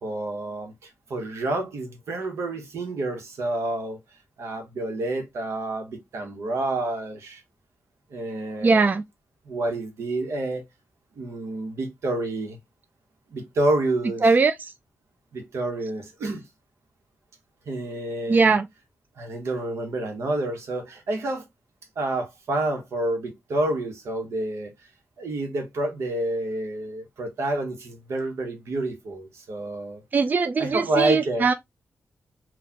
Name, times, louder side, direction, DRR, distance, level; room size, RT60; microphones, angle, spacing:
voice 1, 0.0-4.0 4.4-7.4 8.1-9.0 9.4-10.6 11.2-12.6 13.3-14.3 15.3-16.5 17.7-18.6 19.2-21.4 22.0-24.7 25.2-30.0 30.6-31.5, right 2 dB, 80° right, 1.0 m, -29 dB
voice 2, 8.6-9.0 14.2-14.7 18.3-18.7 30.1-31.5, right 4 dB, 40° right, 0.3 m, -20 dB
3.9 x 2.3 x 2.8 m
cardioid pair, 80°, 5 cm